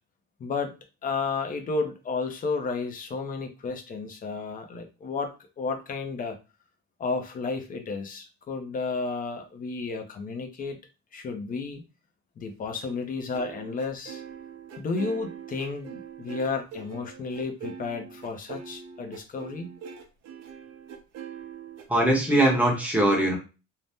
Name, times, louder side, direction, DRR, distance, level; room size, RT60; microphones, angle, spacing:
voice 1, 0.4-0.8 1.0-5.3 5.6-6.4 7.0-10.8 11.1-11.8 12.4-14.2 14.8-19.7, left 4 dB, 30° left, 5 dB, 0.5 m, -32 dB
sound 1, 13.3-22.1, right 7 dB, 55° right, 0.7 m, -42 dB
voice 2, 21.9-23.4, right 1 dB, 5° right, -2 dB, 0.8 m, -21 dB
2.7 x 2.0 x 3.4 m, 0.31 s
cardioid pair, 165°, 30 cm